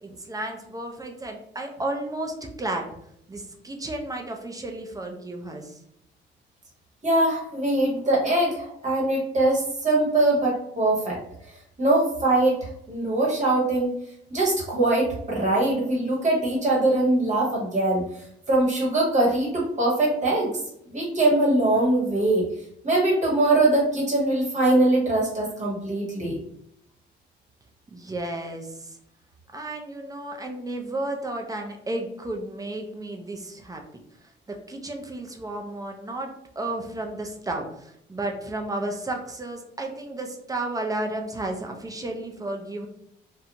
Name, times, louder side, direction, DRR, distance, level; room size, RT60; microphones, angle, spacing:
voice 1, 0.0-2.9 3.3-5.8 27.9-29.0 29.5-34.0 34.5-42.9, right 2 dB, 15° right, 2 dB, 0.5 m, -33 dB
voice 2, 7.0-11.2 11.8-13.9 14.3-18.0 18.5-20.5 20.9-22.4 22.8-26.4, right 2 dB, 35° right, -4 dB, 1.2 m, -22 dB
2.5 x 2.2 x 2.8 m, 0.73 s
cardioid pair, 90°, 20 cm